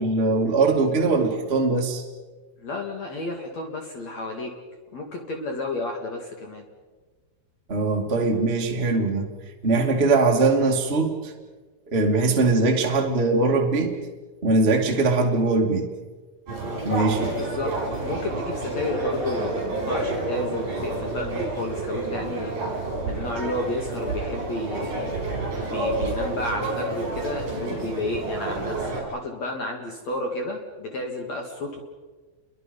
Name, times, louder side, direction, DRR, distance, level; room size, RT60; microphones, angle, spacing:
voice 1, 0.0-2.0 7.7-9.3 9.6-11.3 11.9-13.9 14.4-15.9 16.8-17.3, right 3 dB, 50° right, 1 dB, 0.6 m, -21 dB
voice 2, 2.6-4.5 4.9-6.7 17.3-17.7 18.0-25.1 25.6-31.8, left 2 dB, 45° left, 2 dB, 2.5 m, -31 dB
sound 1, 16.5-29.0, right 2 dB, 35° right, 7.1 m, -29 dB
29.5 x 23.0 x 5.4 m, 1.3 s
omnidirectional pair, 5.8 m